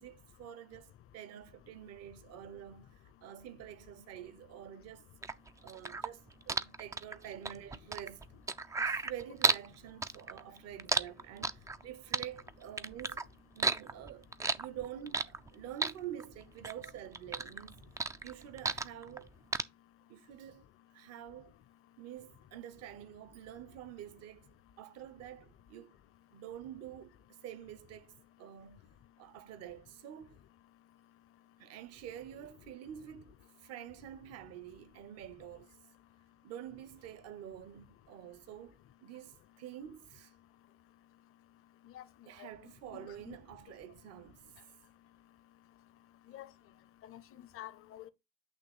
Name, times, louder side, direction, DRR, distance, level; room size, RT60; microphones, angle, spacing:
voice 1, 0.0-5.1 5.6-8.3 8.8-13.2 13.5-14.3 14.5-17.8 18.2-19.3 20.1-20.6 20.9-21.5 22.0-24.5 24.8-26.0 26.3-28.1 28.4-30.4 31.6-35.7 36.4-40.3 42.3-44.4, right 11 dB, 50° right, 0.9 m, -48 dB
sound 1, 5.2-9.7 10.0-11.8 12.1-13.2 13.6-15.5 15.8-16.9 17.1-19.2 19.5-19.6, right 3 dB, 10° right, 0.4 m, -32 dB
voice 2, 42.9-43.3 46.3-46.5 47.1-48.1, left 13 dB, 40° left, 0.7 m, -48 dB
8.6 x 3.0 x 4.3 m
figure-of-eight pair, 60°, 33 cm